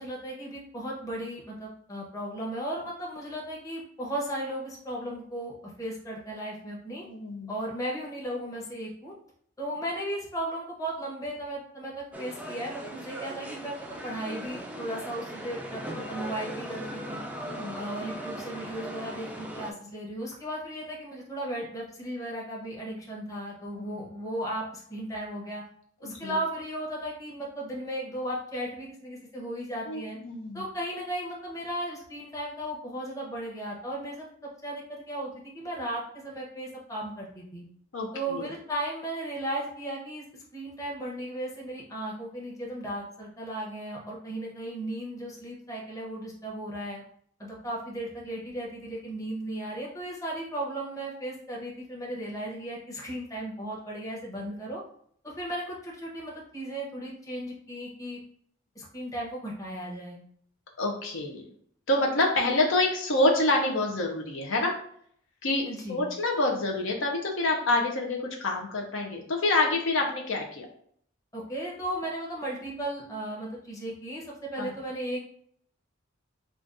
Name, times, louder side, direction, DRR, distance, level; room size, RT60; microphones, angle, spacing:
voice 1, 0.0-7.0 7.5-9.1 9.6-13.8 14.0-17.2 17.7-25.6 26.0-30.2 30.5-34.2 34.6-37.7 38.1-40.2 40.5-47.0 47.4-54.8 55.2-58.2 58.7-60.2 65.7-66.0 71.3-74.2 74.5-75.2, right 1 dB, 15° left, -4 dB, 0.9 m, -36 dB
voice 2, 7.0-7.5 17.4-17.8 23.7-23.9 26.0-26.3 29.9-30.6 37.9-38.5 60.8-61.4 61.9-64.7 65.4-70.7 74.6-74.7, left 2 dB, 65° left, 1 dB, 0.6 m, -27 dB
sound 1, 12.1-19.7, right 1 dB, 10° right, 0.4 m, -39 dB
5.0 x 2.4 x 2.5 m, 0.64 s
head